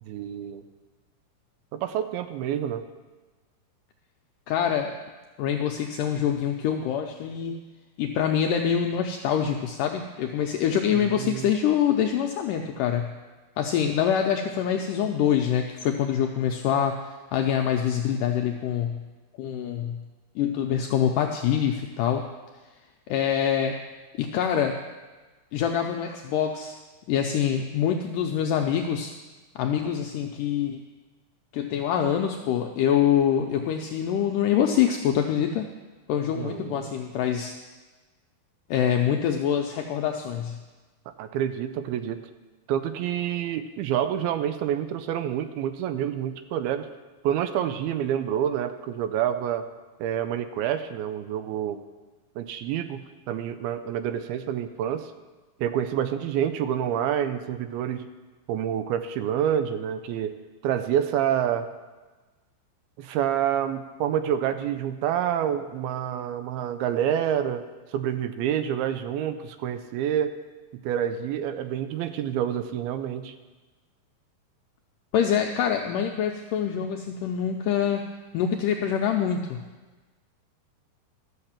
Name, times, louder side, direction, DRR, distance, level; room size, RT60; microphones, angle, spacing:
voice 1, 0.0-0.6 1.7-2.9 10.9-11.5 36.4-36.9 41.2-42.2 42.7-46.9 47.2-49.6 50.0-51.8 52.4-53.0 53.3-55.1 55.6-58.1 58.5-60.4 60.6-61.7 63.0-67.7 67.9-70.3 70.8-73.4, right 10 dB, 85° right, 10 dB, 2.5 m, -28 dB
voice 2, 4.5-4.9 5.4-7.6 8.0-13.1 13.6-17.0 17.3-19.0 19.4-20.0 20.4-22.3 23.1-23.8 24.2-24.8 25.5-26.8 27.1-29.1 29.6-30.8 31.5-35.7 36.1-37.5 38.7-40.6 75.1-78.1 78.3-79.6, left 9 dB, 85° left, 3 dB, 1.9 m, -25 dB
13.0 x 6.7 x 7.3 m, 1.3 s
omnidirectional pair, 4.5 m